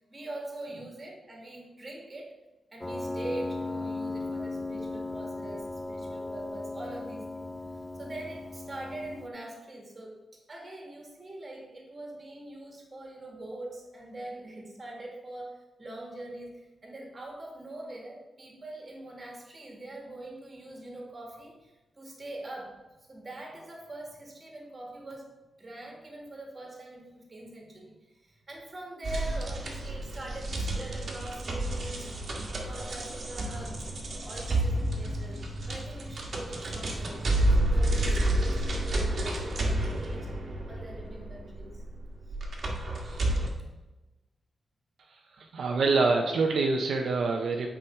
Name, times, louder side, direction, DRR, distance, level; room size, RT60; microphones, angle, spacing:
voice 1, 0.1-2.3 2.7-7.5 7.9-10.2 10.5-25.3 25.6-35.4 35.7-40.3 40.7-41.8 43.6-43.7, right 1 dB, 25° right, -1 dB, 1.9 m, -43 dB
Piano, 2.8-9.3, left 2 dB, 15° left, 0.4 m, -37 dB
sound 1, 29.0-43.5, right 1 dB, 45° right, 1.5 m, -30 dB
voice 2, 45.1-47.7, right 3 dB, 70° right, 2 dB, 0.7 m, -26 dB
8.6 x 5.0 x 4.4 m, 1.1 s
wide cardioid pair, 165°, 0 cm